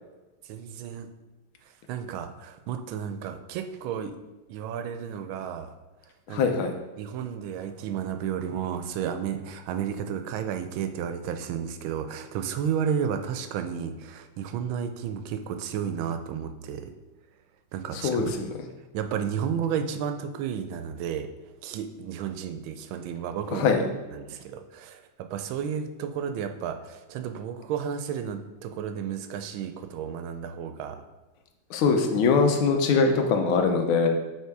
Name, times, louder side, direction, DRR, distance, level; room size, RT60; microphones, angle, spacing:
voice 1, 0.5-1.1 1.9-4.2 4.5-5.7 6.3-6.4 7.0-16.9 17.7-18.5 18.9-21.3 21.6-23.7 24.1-31.0, right 8 dB, 90° right, 8 dB, 1.4 m, -32 dB
voice 2, 6.3-6.7 17.9-18.5 23.5-23.8 31.7-34.1, left 5 dB, 90° left, 5 dB, 1.6 m, -22 dB
5.5 x 3.9 x 4.6 m, 1.2 s
omnidirectional pair, 2.2 m